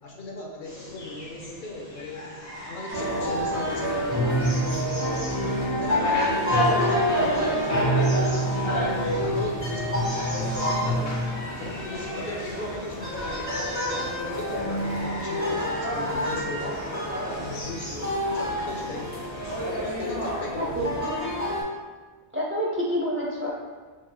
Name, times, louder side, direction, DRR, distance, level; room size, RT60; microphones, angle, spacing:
voice 1, 0.0-5.4 5.8-8.8 9.2-13.7 14.0-16.8 17.1-19.4 19.7-21.0, left 2 dB, 60° left, -1 dB, 0.8 m, -38 dB
sound 1, 0.6-19.6, right 1 dB, 40° left, 1.4 m, -33 dB
sound 2, 2.9-21.6, equal, 15° left, 1.1 m, -28 dB
voice 2, 22.3-23.5, equal, 20° right, -3 dB, 0.3 m, -27 dB
5.7 x 3.1 x 2.2 m, 1.4 s
omnidirectional pair, 1.0 m